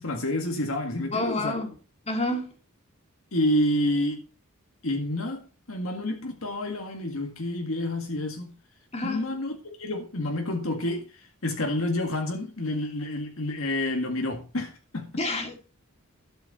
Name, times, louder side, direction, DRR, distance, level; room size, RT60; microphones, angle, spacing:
voice 1, 0.0-1.5 3.3-4.2 4.8-8.5 9.0-15.1, left 1 dB, 70° left, 1.9 m, -29 dB
voice 2, 1.1-1.7 2.1-2.5 8.9-9.2 15.2-15.6, left 2 dB, 30° left, 2.8 m, -28 dB
12.5 x 8.3 x 4.2 m
head